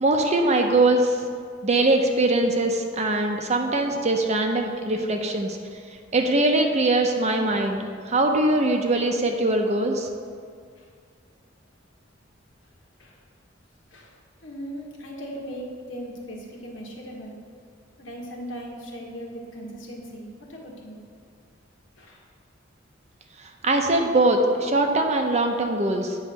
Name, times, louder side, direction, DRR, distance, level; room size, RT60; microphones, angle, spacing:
voice 1, 0.0-1.2 1.6-5.6 6.1-10.1 23.6-26.2, right 2 dB, 35° right, 3 dB, 0.7 m, -22 dB
voice 2, 14.4-17.4 18.0-21.0 22.0-22.2, equal, 75° left, -2 dB, 1.4 m, -38 dB
8.7 x 3.2 x 6.4 m, 2.1 s
head